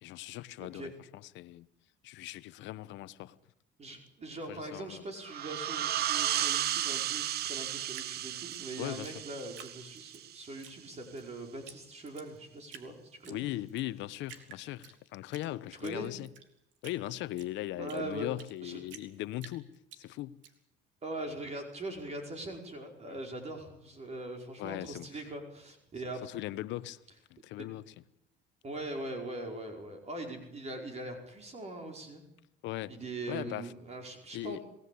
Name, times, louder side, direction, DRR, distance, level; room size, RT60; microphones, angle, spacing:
voice 1, 0.0-1.7 2.0-3.4 4.5-5.0 8.8-9.2 13.3-16.3 16.8-20.4 23.1-23.2 24.6-25.2 26.2-27.0 27.3-27.9 32.6-32.9 33.3-33.7 34.3-34.6, left 15 dB, 75° left, 1.1 m, -39 dB
voice 2, 0.6-0.9 3.8-13.4 15.8-16.1 17.8-18.3 18.6-18.8 21.0-26.2 27.6-27.7 28.6-32.2 32.9-34.6, right 2 dB, 35° right, 5.0 m, -41 dB
sound 1, 5.2-10.6, right 12 dB, 55° right, 0.9 m, -34 dB
Drip, 7.9-10.2 10.6-11.3 11.7-11.8 12.1-12.9 13.2-13.9 14.2-15.5 15.8-18.6 18.9-20.5, right 8 dB, 75° right, 3.3 m, -51 dB
27.5 x 19.0 x 8.5 m
cardioid pair, 110°, 19 cm